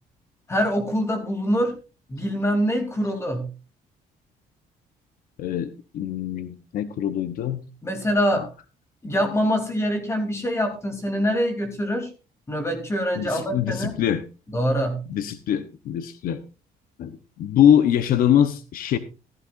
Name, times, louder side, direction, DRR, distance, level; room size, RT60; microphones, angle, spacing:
voice 1, 0.5-1.7 2.1-3.5 7.8-8.5 9.0-12.1 12.5-14.0 14.5-15.0, equal, 15° left, 5 dB, 3.1 m, -24 dB
voice 2, 5.4-7.7 8.3-8.5 13.1-14.2 15.1-16.4 17.0-19.0, left 10 dB, 65° left, 11 dB, 0.9 m, -23 dB
15.5 x 14.0 x 2.5 m, 0.31 s
cardioid pair, 170°, 16 cm